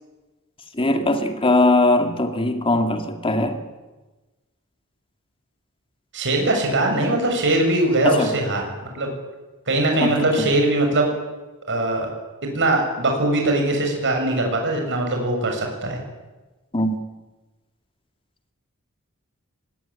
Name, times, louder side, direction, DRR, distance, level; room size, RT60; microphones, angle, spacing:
voice 1, 0.8-3.6 8.0-8.3 10.0-10.2 16.7-17.0, left 2 dB, 25° left, 6 dB, 2.4 m, -20 dB
voice 2, 6.1-9.1 9.7-11.1 11.7-12.1 12.4-16.0, right 2 dB, 55° right, 2 dB, 7.1 m, -21 dB
24.0 x 21.0 x 10.0 m, 1.2 s
head